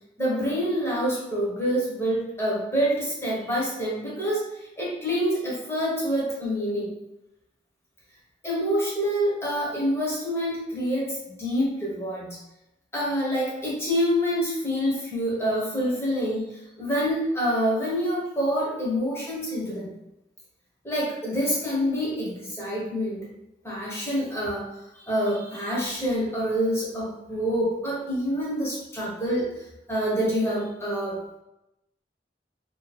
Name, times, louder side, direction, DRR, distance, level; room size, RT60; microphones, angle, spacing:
voice 1, 0.2-4.4 4.8-6.9 8.4-12.4 12.9-16.5 16.8-19.9 20.8-23.3 23.6-24.6 24.9-29.5 29.9-31.2, equal, 15° left, -5 dB, 1.2 m, -26 dB
2.8 x 2.7 x 4.1 m, 0.90 s
head